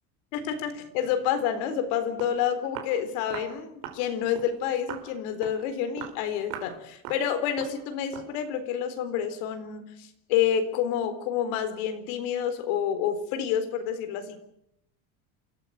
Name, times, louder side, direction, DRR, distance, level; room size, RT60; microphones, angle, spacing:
voice 1, 0.3-14.4, left 9 dB, 75° left, 9 dB, 4.0 m, -29 dB
Walk footsteps, 1.9-2.0 2.2-2.4 2.8-3.0 3.3-3.5 3.8-4.0 4.4-4.5 4.9-5.1 5.4-5.6 6.0-6.2 6.5-6.8 7.1-7.3 7.6-7.8 8.1-8.3, right 10 dB, 75° right, 4.7 m, -39 dB
28.0 x 14.5 x 9.3 m, 0.78 s
cardioid pair, 145°, 38 cm